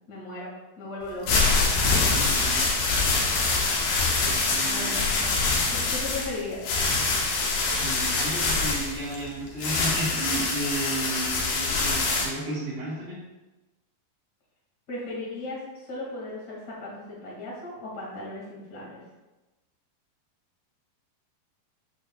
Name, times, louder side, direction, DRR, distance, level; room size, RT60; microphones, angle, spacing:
voice 1, 0.1-1.4 4.7-6.6 14.9-19.0, left 2 dB, 35° left, -4 dB, 1.9 m, -37 dB
sound 1, 1.0-12.3, left 3 dB, 80° left, 3.0 m, -25 dB
voice 2, 1.9-2.6 4.2-4.9 7.8-13.2, right 1 dB, 40° right, -11 dB, 3.1 m, -33 dB
8.6 x 6.5 x 2.3 m, 1.1 s
omnidirectional pair, 4.3 m